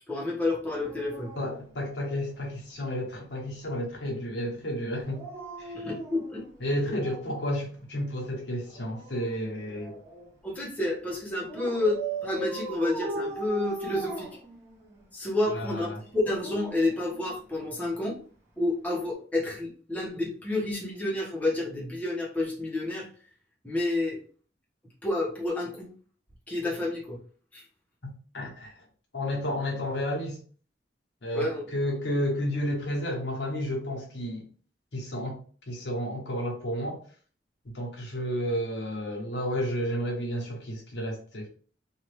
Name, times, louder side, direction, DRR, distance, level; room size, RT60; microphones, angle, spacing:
voice 1, 0.1-1.3 5.7-6.5 6.8-6.9 10.4-14.3 15.1-18.2 18.6-23.1 23.6-24.2 25.0-25.9 26.5-27.2 27.5-27.6 31.3-31.7, left 2 dB, 10° left, 1.0 m, -30 dB
Dog, 0.7-2.6 5.0-7.4 8.7-10.3 11.5-15.0 16.0-17.7 18.9-19.1, right 2 dB, 15° right, 0.9 m, -39 dB
voice 2, 1.4-5.3 5.6-5.7 6.6-10.0 15.5-16.0 28.3-28.7 29.1-30.4 31.2-34.4 34.9-35.4 35.7-37.0 37.6-41.5, equal, 70° left, 1.0 m, -31 dB
2.8 x 2.5 x 3.2 m
head